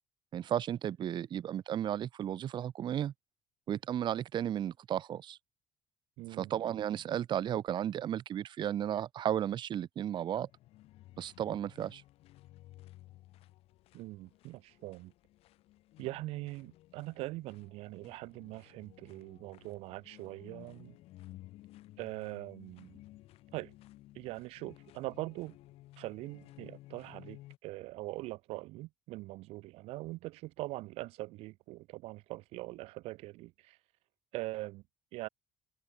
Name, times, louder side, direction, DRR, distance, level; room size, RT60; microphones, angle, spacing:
voice 1, 0.3-3.1 3.7-5.4 6.3-10.5 11.2-12.0, right 10 dB, 50° right, 0.9 m, -34 dB
voice 2, 6.2-6.8 13.9-15.1 16.0-21.0 22.0-23.0 23.5-23.7 24.1-25.6 26.0-33.8 34.3-34.8 35.1-35.3, right 20 dB, 85° right, 1.7 m, -42 dB
sound 1, 10.4-27.6, left 16 dB, 75° left, 6.4 m, -56 dB
cardioid pair, 110°, 10 cm